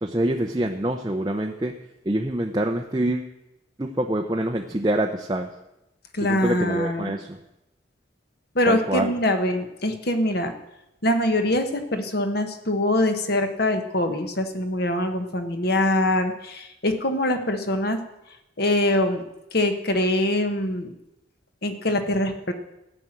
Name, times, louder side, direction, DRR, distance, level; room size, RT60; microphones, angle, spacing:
voice 1, 0.0-1.8 2.1-3.3 3.8-5.5 6.3-7.4 8.7-9.1, right 1 dB, 20° right, 2 dB, 0.6 m, -25 dB
voice 2, 6.1-7.1 8.5-10.5 11.0-18.0 18.6-19.2 19.5-20.9 21.6-22.5, left 1 dB, 55° left, 7 dB, 1.3 m, -23 dB
14.5 x 6.0 x 9.1 m, 0.90 s
head